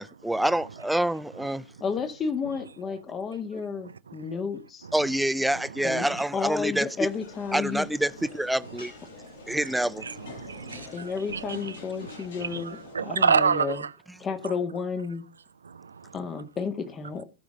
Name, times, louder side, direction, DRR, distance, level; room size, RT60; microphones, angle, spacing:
voice 1, 0.0-1.6 4.9-7.1 7.5-8.9 9.5-10.0, right 1 dB, 5° right, 0.6 m, -27 dB
voice 2, 1.8-4.9 5.8-7.9 10.9-13.8 14.2-15.2 16.1-17.2, left 5 dB, 25° left, 1.7 m, -32 dB
sound 1, 7.1-13.0, left 4 dB, 60° left, 7.5 m, -46 dB
voice 3, 10.0-11.7 12.1-13.9 15.6-16.2, right 6 dB, 75° right, 0.6 m, -28 dB
16.5 x 6.5 x 3.7 m
figure-of-eight pair, 90°, 0 cm